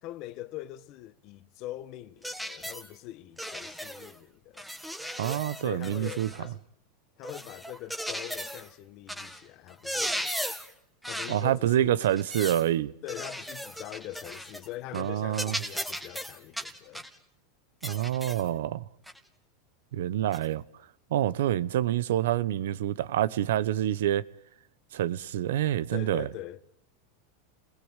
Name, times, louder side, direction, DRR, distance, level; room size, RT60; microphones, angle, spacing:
voice 1, 0.0-4.7 5.5-6.6 7.2-10.3 11.1-12.0 13.0-17.1 25.9-26.6, left 15 dB, 45° left, 1.5 m, -42 dB
sound 1, 2.2-2.9 3.4-4.2 4.6-6.4 7.2-8.7 9.1-9.4 9.7-10.7 11.0-11.4 12.0-12.7 13.1-14.7 14.9-15.1 15.3-17.2 17.8-18.5 19.1-19.2 20.3-20.5, equal, ahead, 1.9 m, -37 dB
voice 2, 5.2-6.3 11.3-12.9 14.9-15.6 17.8-18.8 19.9-20.6 21.1-24.2 24.9-26.3, right 12 dB, 80° right, 1.0 m, -27 dB
29.0 x 21.0 x 9.1 m
supercardioid pair, 135°, 0 cm